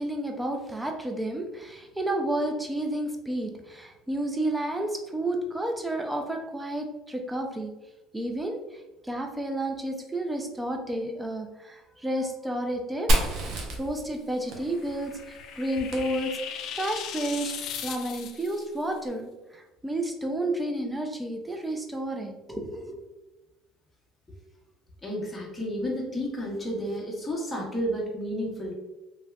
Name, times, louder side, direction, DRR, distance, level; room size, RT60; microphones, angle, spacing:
voice 1, 0.0-7.7 8.1-8.6 9.0-13.1 13.8-16.4 16.8-17.5 17.8-23.0, right 1 dB, 10° right, 3 dB, 0.5 m, -31 dB
Fire, 13.1-16.8, right 1 dB, 60° right, 0.7 m, -30 dB
sound 1, 14.5-18.7, left 8 dB, 65° left, 0.3 m, -38 dB
voice 2, 25.0-28.7, equal, 15° left, -2 dB, 1.0 m, -31 dB
3.3 x 2.6 x 2.3 m, 1.1 s
supercardioid pair, 95°, 0 cm